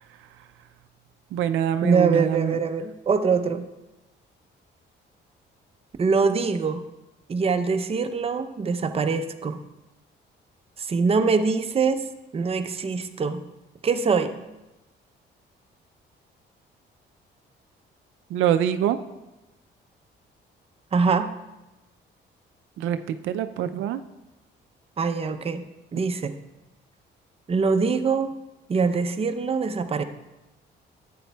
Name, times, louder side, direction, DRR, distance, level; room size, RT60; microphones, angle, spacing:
voice 1, 1.3-2.6 18.3-19.0 22.8-24.0, right 10 dB, 85° right, 9 dB, 0.4 m, -24 dB
voice 2, 1.8-3.7 6.0-6.8 7.3-9.6 10.8-12.0 12.3-13.4 13.8-14.4 20.9-21.3 25.0-25.6 25.9-26.3 27.5-28.3 28.7-30.0, right 5 dB, 30° right, 7 dB, 0.6 m, -23 dB
11.0 x 8.3 x 2.3 m, 1.0 s
cardioid pair, 90°, 20 cm